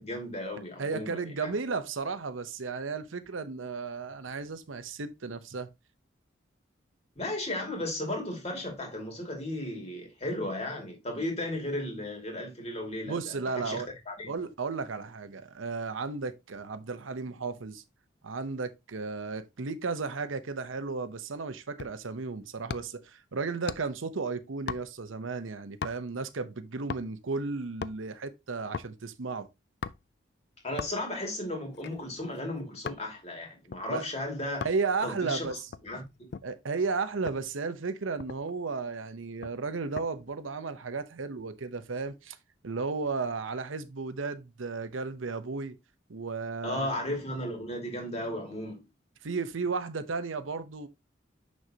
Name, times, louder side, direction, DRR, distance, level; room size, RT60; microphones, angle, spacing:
voice 1, 0.0-1.5 7.2-14.3 30.6-34.7 35.0-35.5 35.8-36.1 46.6-48.8, left 1 dB, 30° left, 2.3 m, -35 dB
voice 2, 0.8-5.7 13.0-13.9 14.3-17.8 18.2-29.5 33.9-34.0 34.6-35.6 36.4-42.4 42.6-45.8 46.1-46.9 49.2-50.9, right 4 dB, 90° right, 0.8 m, -34 dB
sound 1, 21.8-22.1 22.7-23.1 23.7-24.0 24.7-25.2 25.8-26.2 26.9-27.3 27.6-28.0 28.7-29.0 29.8-30.2 30.8-31.2 31.7-33.1 33.7-33.9 34.6-34.9 35.5-36.5 37.3-37.5 37.9-38.0 38.2-38.6 39.4-40.1 40.5-40.8, left 5 dB, 55° left, 0.4 m, -39 dB
6.4 x 6.3 x 2.8 m
head